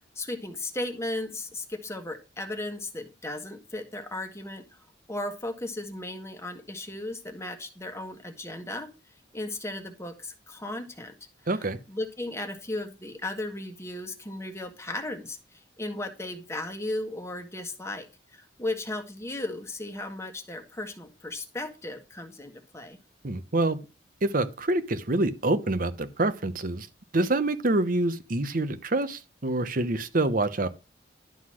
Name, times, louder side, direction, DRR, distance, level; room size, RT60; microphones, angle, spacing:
voice 1, 0.1-4.8 5.1-8.9 9.3-11.1 11.9-18.1 18.3-23.0, left 2 dB, 15° left, 1.4 m, -35 dB
voice 2, 11.5-11.8 23.2-23.8 24.2-26.9 27.1-30.7, right 2 dB, 50° right, 0.9 m, -26 dB
11.5 x 4.0 x 6.2 m
head